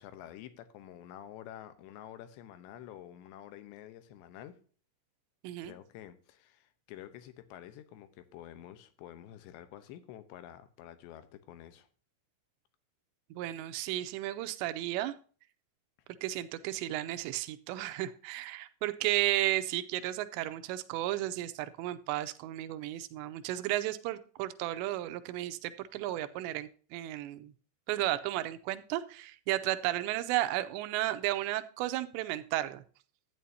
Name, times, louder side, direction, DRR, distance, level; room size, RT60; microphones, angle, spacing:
voice 1, 0.0-4.6 5.6-11.9, left 11 dB, 80° left, 11 dB, 2.9 m, -49 dB
voice 2, 13.3-15.1 16.2-27.5 27.9-32.8, right 15 dB, 80° right, 11 dB, 2.6 m, -33 dB
12.5 x 9.2 x 2.7 m, 0.40 s
omnidirectional pair, 5.5 m